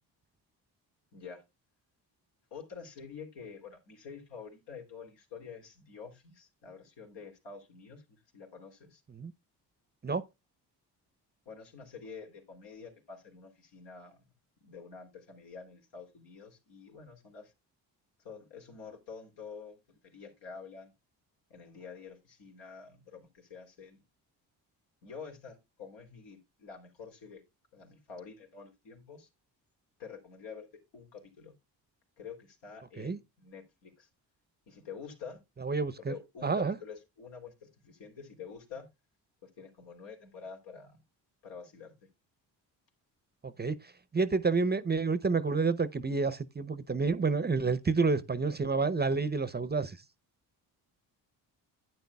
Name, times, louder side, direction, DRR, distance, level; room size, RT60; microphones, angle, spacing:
voice 1, 1.1-1.4 2.5-9.0 11.5-14.2 14.6-17.5 18.2-20.9 21.5-24.0 25.0-27.4 27.7-29.3 30.0-30.7 30.9-31.5 32.2-34.1 34.7-35.4 36.1-38.9 39.4-41.0 41.4-41.9, left 5 dB, 75° left, 3.4 m, -48 dB
voice 2, 35.6-36.1 36.4-36.8 43.4-50.0, right 4 dB, 25° right, 0.7 m, -29 dB
11.5 x 9.1 x 2.3 m
supercardioid pair, 60°, 43 cm